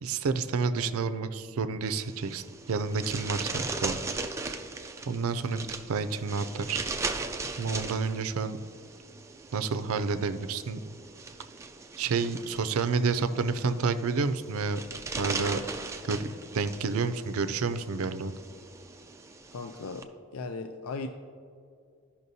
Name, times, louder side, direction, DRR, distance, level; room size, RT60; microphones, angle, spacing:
voice 1, 0.0-4.0 5.1-6.8 7.6-8.6 9.5-10.8 12.0-14.8 15.2-15.6 16.0-16.2 16.5-18.3, right 4 dB, 85° right, 11 dB, 0.4 m, -29 dB
sound 1, 1.8-20.0, right 3 dB, 15° right, 0.3 m, -39 dB
voice 2, 19.5-20.1 20.3-21.1, left 4 dB, 85° left, 6 dB, 0.4 m, -37 dB
13.5 x 5.7 x 2.7 m, 2.3 s
head